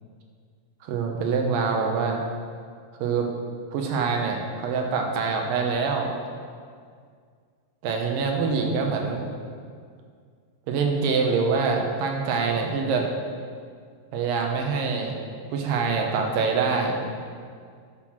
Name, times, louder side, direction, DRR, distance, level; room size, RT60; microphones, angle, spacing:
voice 1, 0.8-2.2 3.0-3.3 3.7-6.1 7.8-9.3 10.7-13.1 14.1-15.2 15.5-17.0, right 5 dB, 75° right, 2 dB, 2.4 m, -25 dB
9.6 x 4.5 x 6.0 m, 2.1 s
omnidirectional pair, 4.2 m